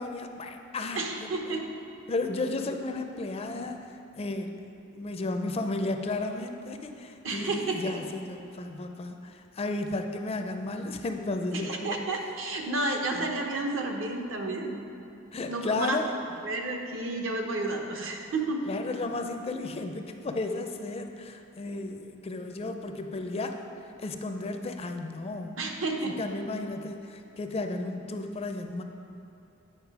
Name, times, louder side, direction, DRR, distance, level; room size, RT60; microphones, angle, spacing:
voice 1, 0.0-1.6 2.1-4.5 4.9-12.0 13.1-13.3 15.3-16.2 18.7-23.6 24.0-25.6 26.0-28.8, left 2 dB, 30° left, 6 dB, 0.4 m, -33 dB
voice 2, 0.9-1.7 7.2-8.0 11.5-14.8 15.5-16.0 16.4-18.6 25.6-26.2, right 2 dB, 70° right, 2 dB, 0.9 m, -31 dB
8.8 x 5.4 x 4.7 m, 2.8 s
head